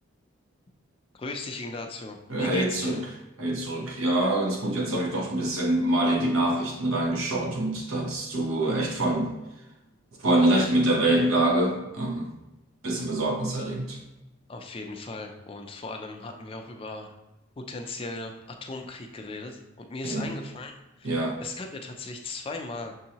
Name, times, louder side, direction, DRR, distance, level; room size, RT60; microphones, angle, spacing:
voice 1, 1.1-3.0 5.4-5.5 14.5-17.2 17.6-22.9, left 3 dB, 25° left, 4 dB, 0.4 m, -37 dB
voice 2, 2.3-3.1 3.4-9.3 10.2-12.3 12.8-14.0 20.0-20.3 21.0-21.4, right 1 dB, 80° right, -1 dB, 0.9 m, -25 dB
6.2 x 2.7 x 2.8 m, 0.99 s
head